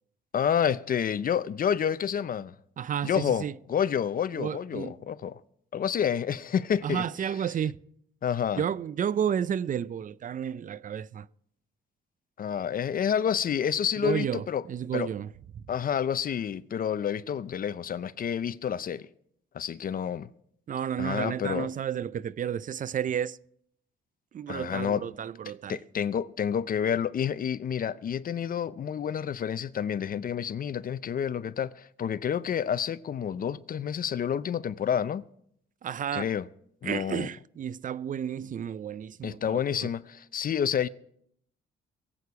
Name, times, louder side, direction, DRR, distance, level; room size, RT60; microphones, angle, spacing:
voice 1, 0.3-2.5 3.0-5.4 5.7-7.1 8.2-8.6 12.4-14.6 14.9-15.1 15.7-19.1 19.5-20.3 21.0-21.7 24.5-25.0 25.7-35.2 36.1-36.5 36.8-37.3 39.2-40.9, left 8 dB, 45° left, 0.6 m, -29 dB
voice 2, 2.8-3.5 4.3-4.9 6.8-7.8 8.6-11.3 14.0-15.3 15.6-15.7 20.7-23.4 24.3-25.8 35.8-36.3 36.8-39.9, right 8 dB, 40° right, 0.5 m, -32 dB
22.5 x 8.6 x 4.8 m
cardioid pair, 90°, 20 cm